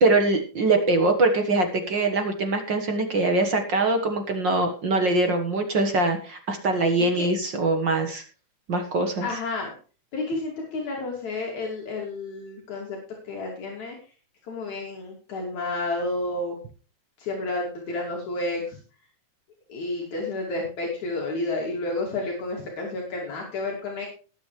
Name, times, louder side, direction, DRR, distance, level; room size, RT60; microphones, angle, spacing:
voice 1, 0.0-8.2 8.7-9.3, right 2 dB, 50° right, 5 dB, 1.6 m, -23 dB
voice 2, 9.2-9.7 10.1-13.0 13.2-14.0 14.5-16.6 17.2-18.8 19.7-24.1, left 2 dB, 65° left, -1 dB, 3.8 m, -30 dB
19.5 x 7.9 x 3.2 m, 0.37 s
omnidirectional pair, 3.5 m